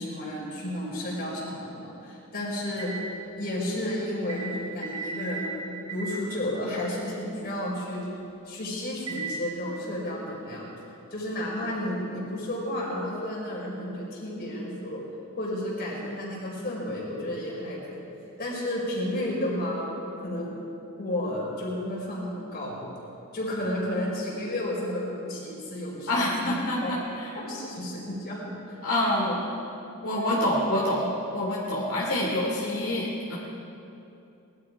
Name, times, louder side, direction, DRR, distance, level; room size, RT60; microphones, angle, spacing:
voice 1, 0.0-2.9 3.4-8.1 8.4-10.7 11.1-15.0 15.4-18.0 18.4-19.9 20.2-20.5 21.0-22.8 23.3-26.1 26.4-26.9 27.3-28.8 29.2-29.3 30.1-30.3, left 1 dB, 45° left, -5 dB, 4.6 m, -32 dB
sound 1, 2.8-3.0 4.3-4.5 4.8-5.5 5.9-6.1 6.9-7.0 9.1-9.3, right 5 dB, 25° right, 3.4 m, -35 dB
voice 2, 26.1-27.3 28.8-29.4 30.0-33.4, left 1 dB, 75° left, -6 dB, 2.9 m, -27 dB
21.0 x 12.5 x 4.8 m, 2.8 s
head